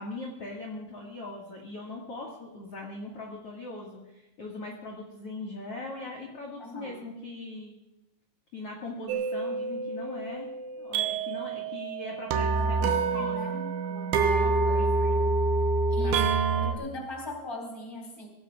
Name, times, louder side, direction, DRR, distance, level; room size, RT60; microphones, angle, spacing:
voice 1, 0.0-7.7 8.5-10.5 10.8-13.6 14.4-14.9 16.0-16.2 16.6-16.8, left 2 dB, 45° left, -2 dB, 2.1 m, -40 dB
voice 2, 6.6-7.0 12.5-15.3 15.9-18.3, left 1 dB, 5° left, 0 dB, 2.9 m, -41 dB
sound 1, 9.1-16.7, right 4 dB, 80° right, 3.2 m, -27 dB
24.0 x 17.5 x 2.5 m, 0.96 s
omnidirectional pair, 5.2 m